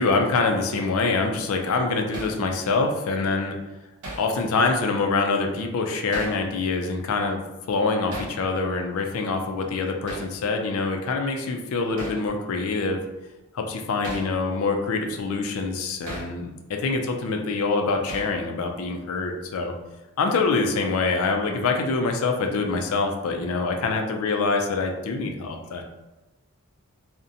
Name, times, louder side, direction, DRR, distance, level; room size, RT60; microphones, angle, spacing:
voice 1, 0.0-3.5 4.2-7.4 7.7-13.0 13.5-19.7 20.2-25.8, left 3 dB, 70° left, 4 dB, 0.3 m, -25 dB
Hammer, 2.1-2.4 4.0-4.3 6.1-6.4 8.1-8.4 10.1-10.3 12.0-12.2 14.0-14.3 16.1-16.3 18.1-18.4, right 1 dB, 85° right, 0.6 m, -36 dB
2.5 x 2.1 x 2.6 m, 1.1 s
head